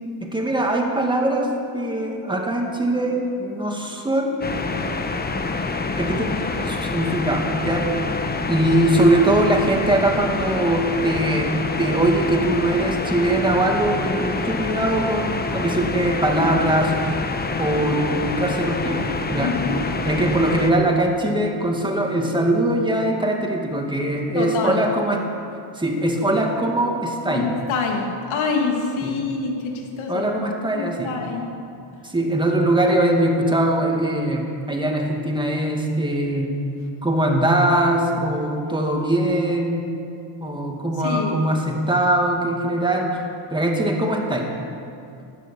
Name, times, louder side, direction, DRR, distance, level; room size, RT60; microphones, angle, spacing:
voice 1, 0.2-4.5 6.0-7.9 8.5-17.2 17.6-19.0 19.3-19.6 20.0-25.3 25.8-27.5 29.0-29.2 30.1-31.2 32.0-36.6 37.0-39.8 40.4-43.2 43.5-44.5, right 1 dB, 10° right, 1 dB, 2.1 m, -21 dB
sound 1, 4.4-20.7, left 3 dB, 20° left, 0.9 m, -26 dB
voice 2, 19.4-19.8 24.3-24.8 27.3-30.3 30.7-31.5 41.0-41.5, left 4 dB, 85° left, 1 dB, 2.6 m, -26 dB
16.0 x 11.0 x 7.0 m, 2.6 s
cardioid pair, 125°, 47 cm